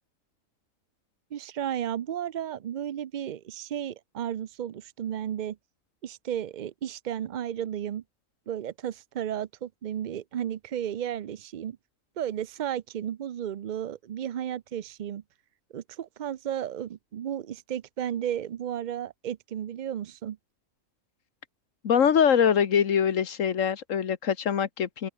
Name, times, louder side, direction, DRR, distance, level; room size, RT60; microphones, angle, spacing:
voice 1, 1.3-5.6 6.0-8.0 8.5-11.8 12.2-15.2 15.7-20.4, right 10 dB, 70° right, 0.4 m, -33 dB
voice 2, 21.8-25.1, left 8 dB, 70° left, 1.5 m, -23 dB
open air
omnidirectional pair, 1.4 m